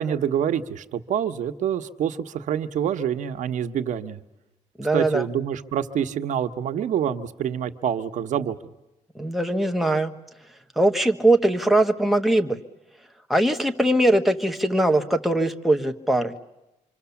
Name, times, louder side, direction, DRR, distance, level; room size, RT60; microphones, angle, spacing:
voice 1, 0.0-4.2 4.9-8.6, right 9 dB, 80° right, 9 dB, 1.1 m, -26 dB
voice 2, 4.8-5.2 9.2-10.1 10.8-12.6 13.3-16.3, right 1 dB, ahead, 5 dB, 1.4 m, -21 dB
26.5 x 25.5 x 7.2 m, 0.95 s
cardioid pair, 130°, 13 cm